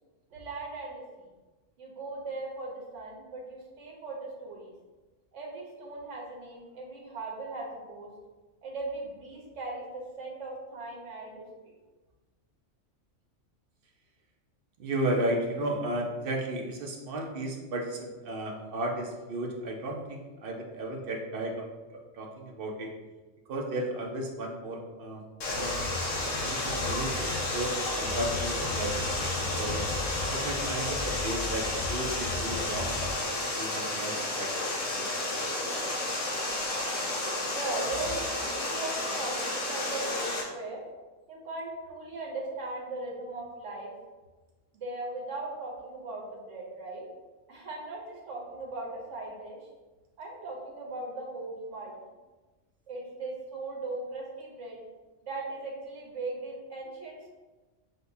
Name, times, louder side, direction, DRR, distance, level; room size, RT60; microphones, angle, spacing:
voice 1, 0.3-1.3 1.8-4.7 5.3-8.1 8.6-11.4 37.5-40.8 41.3-43.9 44.7-47.1 47.5-49.6 50.2-51.9 52.9-54.8 55.2-57.3, right 2 dB, 75° right, -2 dB, 1.3 m, -38 dB
voice 2, 14.8-21.7 21.9-22.9 23.5-25.2 25.5-25.8 26.2-29.9 30.3-34.5 34.9-35.1, right 1 dB, 55° right, 0 dB, 0.8 m, -34 dB
Water, 25.4-40.4, left 2 dB, 90° left, 1.3 m, -32 dB
sound 1, 25.5-33.1, left 3 dB, 35° left, 0.4 m, -38 dB
6.6 x 2.3 x 2.6 m, 1.2 s
omnidirectional pair, 1.3 m